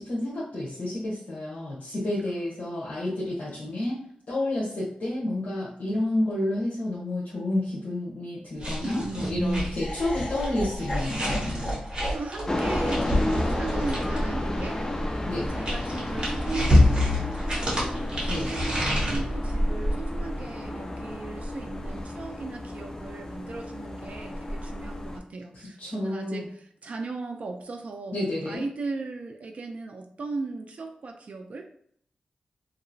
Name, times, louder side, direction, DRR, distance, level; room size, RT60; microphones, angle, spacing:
voice 1, 0.0-4.0 4.3-11.3 15.3-15.5 18.3-18.5 25.8-26.4 28.1-28.6, left 1 dB, 65° left, -7 dB, 1.0 m, -30 dB
sound 1, 8.6-14.4 15.2-19.2, left 1 dB, 35° right, 1.4 m, -27 dB
voice 2, 8.8-9.8 11.7-14.8 15.5-17.9 18.3-28.2 28.5-31.6, right 3 dB, 55° right, 3 dB, 0.4 m, -37 dB
Laughter, 9.7-15.9, equal, 40° left, 1.2 m, -36 dB
sound 2, 12.5-25.2, left 1 dB, 20° left, 0.5 m, -31 dB
2.9 x 2.9 x 2.6 m, 0.64 s
wide cardioid pair, 90°, 3 cm